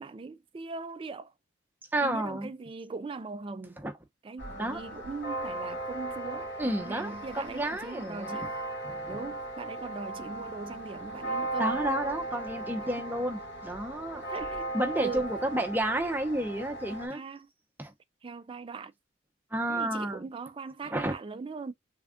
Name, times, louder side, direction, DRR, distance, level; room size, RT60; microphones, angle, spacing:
voice 1, 0.0-1.3 2.0-3.8 4.2-8.5 9.1-11.8 12.7-13.2 14.1-15.3 17.1-17.5 18.2-18.9 19.7-21.7, right 4 dB, 30° right, 0.3 m, -40 dB
voice 2, 1.9-2.5 3.8-3.9 4.6-4.8 6.6-8.5 8.8-9.2 11.6-14.3 14.7-17.2 17.8-17.9 19.5-20.3 20.9-21.1, right 1 dB, 10° right, 0.7 m, -31 dB
sound 1, 4.4-17.1, right 2 dB, 65° left, 2.3 m, -37 dB
3.5 x 2.4 x 3.6 m
head